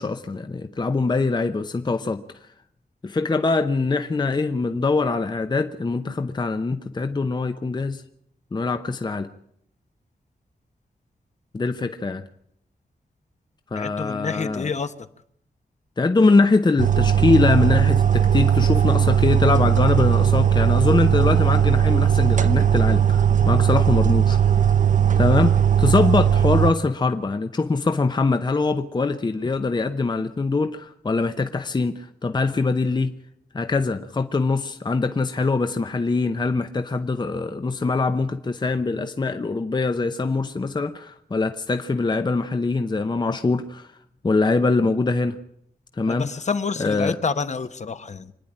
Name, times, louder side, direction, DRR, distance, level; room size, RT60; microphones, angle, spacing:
voice 1, 0.0-2.2 3.0-8.0 8.5-9.3 11.5-12.2 13.7-14.7 16.0-24.6 25.2-33.1 33.5-43.9 44.2-45.4 46.0-46.3 46.8-47.2, left 3 dB, 25° left, 8 dB, 0.7 m, -23 dB
voice 2, 13.7-14.9 46.1-48.3, left 5 dB, 45° left, 11 dB, 1.0 m, -28 dB
sound 1, 16.8-26.7, right 9 dB, 50° right, 0.7 m, -18 dB
25.0 x 10.5 x 10.0 m, 0.73 s
wide cardioid pair, 155°, 16 cm